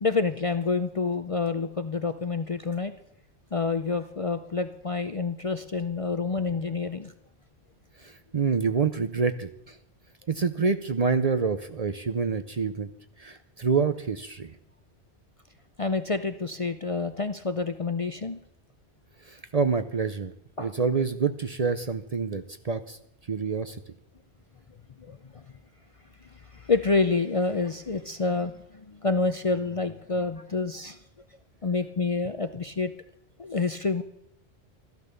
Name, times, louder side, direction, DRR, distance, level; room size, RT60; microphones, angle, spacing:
voice 1, 0.0-2.9 3.5-7.1 15.8-18.4 20.6-20.7 25.1-25.4 26.5-31.0 31.6-32.9 33.4-34.0, left 4 dB, 40° left, 10 dB, 0.5 m, -28 dB
voice 2, 8.0-9.8 10.3-12.9 13.2-14.5 19.2-20.3 20.6-23.0 23.3-23.8, right 5 dB, 45° right, 10 dB, 0.6 m, -27 dB
14.0 x 12.0 x 6.8 m, 0.76 s
omnidirectional pair, 1.1 m